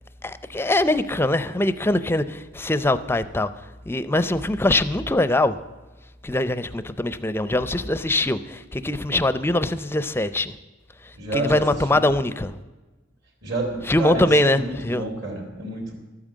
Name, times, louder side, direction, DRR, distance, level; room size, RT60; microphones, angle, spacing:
voice 1, 0.2-3.5 3.9-5.5 6.2-10.5 11.3-12.6 13.8-15.1, left 1 dB, 10° left, 0.5 m, -22 dB
voice 2, 11.1-11.6 13.4-16.0, right 2 dB, 60° right, 3.2 m, -29 dB
13.0 x 9.0 x 7.4 m
head